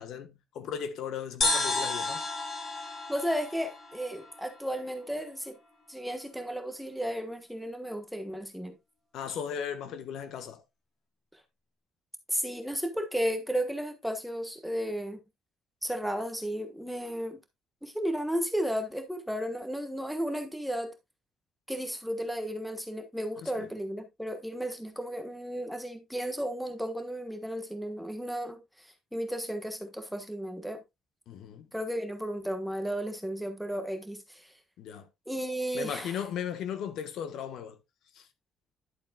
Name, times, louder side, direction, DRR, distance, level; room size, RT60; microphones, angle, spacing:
voice 1, 0.0-2.2 9.1-10.6 23.4-23.7 31.3-31.7 34.8-35.1 35.7-37.8 38.1-38.3, left 8 dB, 65° left, 1.2 m, -37 dB
sound 1, 1.4-4.9, left 3 dB, 35° left, 2.8 m, -32 dB
voice 2, 3.1-5.6 5.9-8.8 12.3-15.2 15.8-17.4 17.8-20.9 21.7-28.6 29.1-30.8 31.7-34.5 35.3-36.2, equal, ahead, 1.3 m, -34 dB
11.0 x 7.5 x 2.3 m
cardioid pair, 165°, 0 cm